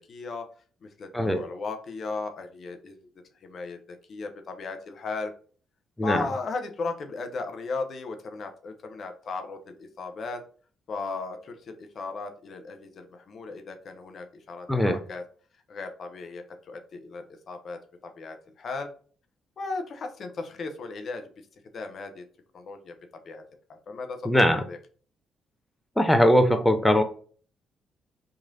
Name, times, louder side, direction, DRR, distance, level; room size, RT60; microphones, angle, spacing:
voice 1, 0.1-0.5 0.8-3.1 3.4-5.3 6.0-10.4 10.9-15.2 15.7-18.9 19.6-21.3 21.7-22.2 22.5-22.9 23.2-23.4 23.9-24.2 24.7-24.8, left 3 dB, 55° left, 5 dB, 0.5 m, -36 dB
voice 2, 24.3-24.7 26.0-27.0, equal, 10° left, 7 dB, 0.5 m, -21 dB
3.0 x 2.4 x 2.6 m, 0.42 s
hypercardioid pair, 45°, 0 cm